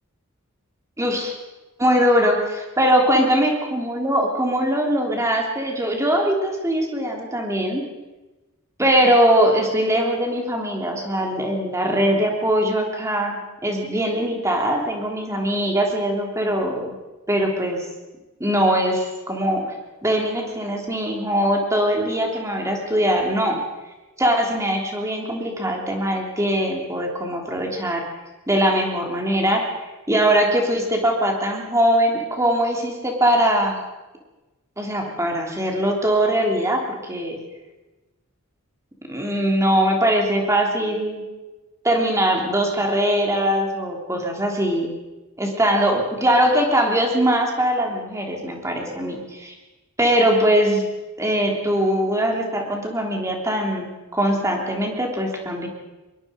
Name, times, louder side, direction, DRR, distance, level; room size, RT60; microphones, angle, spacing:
voice 1, 1.0-1.3 1.8-2.4 2.8-7.8 8.8-16.9 17.3-17.8 18.4-19.6 20.0-23.6 24.2-28.0 28.5-29.6 30.1-33.8 34.8-37.4 39.1-41.2 41.8-44.9 45.4-49.5 50.0-50.8 51.2-55.7, equal, 15° right, 1 dB, 3.4 m, -21 dB
22.5 x 22.5 x 5.3 m, 1.1 s
head